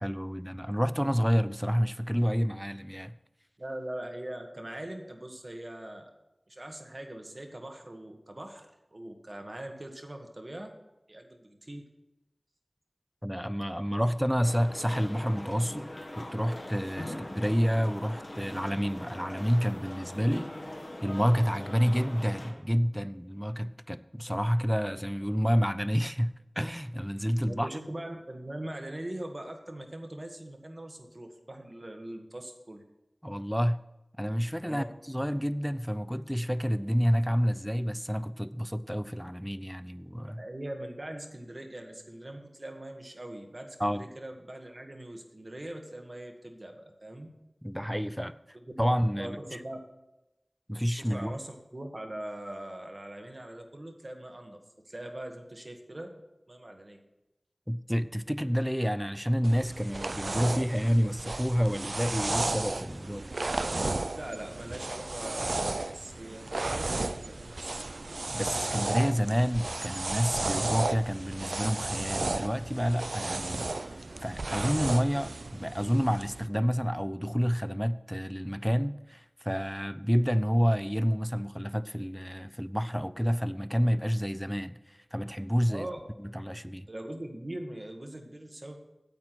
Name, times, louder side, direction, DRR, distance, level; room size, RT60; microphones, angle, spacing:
voice 1, 0.0-3.1 13.2-15.9 16.2-27.7 33.2-33.8 34.2-40.4 43.8-44.0 47.6-48.3 48.8-49.6 50.7-51.3 57.7-63.3 68.3-85.9 86.2-86.9, equal, ahead, 0.5 m, -29 dB
voice 2, 3.6-6.1 6.5-10.8 11.1-11.9 17.0-17.2 27.5-32.8 34.6-34.9 40.4-47.3 49.1-49.8 51.0-54.6 54.8-56.2 56.5-57.0 64.1-67.8 85.7-86.0 86.9-88.8, right 1 dB, 50° right, 1.6 m, -41 dB
sound 1, 14.4-22.5, left 1 dB, 55° left, 1.7 m, -42 dB
sound 2, 59.4-76.5, right 2 dB, 75° right, 0.4 m, -34 dB
8.8 x 8.4 x 6.0 m
wide cardioid pair, 45°, 0 cm